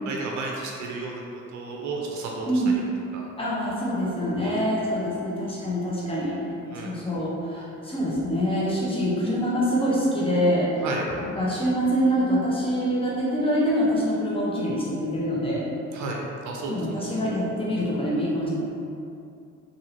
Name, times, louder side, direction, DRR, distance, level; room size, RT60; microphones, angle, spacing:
voice 1, 0.0-1.2 1.5-2.6 3.1-3.3 4.4-4.6 6.7-6.9 10.8-11.0 15.9-17.3, right 3 dB, 70° right, -1 dB, 0.5 m, -33 dB
voice 2, 2.4-2.7 3.4-6.3 6.8-10.8 11.2-15.7 16.7-18.5, equal, 20° left, -6 dB, 0.8 m, -25 dB
2.7 x 2.6 x 2.8 m, 2.6 s
cardioid pair, 90°, 30 cm